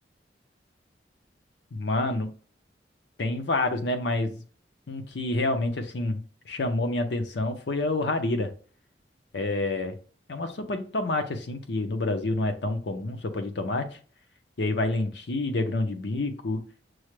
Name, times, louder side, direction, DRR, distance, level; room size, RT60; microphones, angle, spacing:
voice 1, 1.7-2.3 3.2-4.4 4.9-8.5 9.3-9.9 10.3-13.9 14.6-16.6, left 2 dB, 75° left, 6 dB, 0.7 m, -28 dB
6.1 x 2.2 x 3.1 m, 0.40 s
head